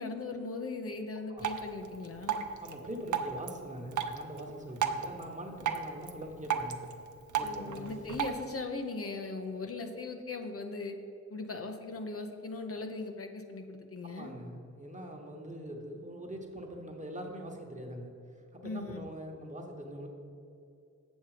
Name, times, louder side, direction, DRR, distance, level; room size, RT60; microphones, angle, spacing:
voice 1, 0.0-2.4 7.4-11.0 11.3-14.3 18.6-19.0, left 3 dB, 50° left, 5 dB, 0.7 m, -39 dB
Drip, 1.4-8.4, right 7 dB, 85° right, 0.6 m, -36 dB
voice 2, 2.6-6.8 7.4-8.1 14.0-18.1 18.5-20.1, equal, 25° right, 1 dB, 1.2 m, -43 dB
7.3 x 7.1 x 4.9 m, 2.6 s
wide cardioid pair, 90°, 29 cm